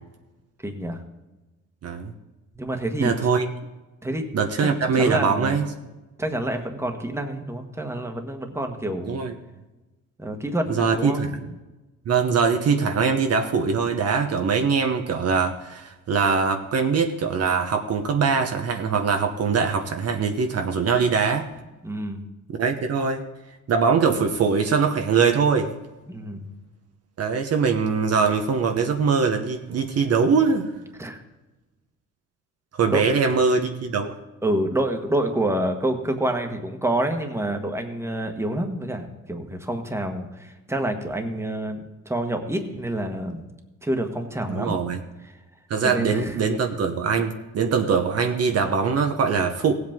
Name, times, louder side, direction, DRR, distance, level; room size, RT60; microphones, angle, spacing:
voice 1, 0.6-1.0 2.6-3.1 4.0-4.3 4.6-5.6 6.2-9.2 10.2-11.2 21.8-22.2 26.1-26.5 31.0-31.2 32.9-33.1 34.4-43.4 43.8-44.8 45.2-45.4 45.8-46.4, right 1 dB, 10° right, 5 dB, 1.5 m, -27 dB
voice 2, 3.0-3.5 4.3-5.7 9.1-9.3 10.7-11.3 12.1-21.5 22.5-23.2 23.7-25.7 27.2-30.7 32.7-34.1 44.5-45.0 45.7-49.7, right 5 dB, 55° right, 5 dB, 1.0 m, -22 dB
16.5 x 7.9 x 3.7 m, 1.1 s
cardioid pair, 90°, 30 cm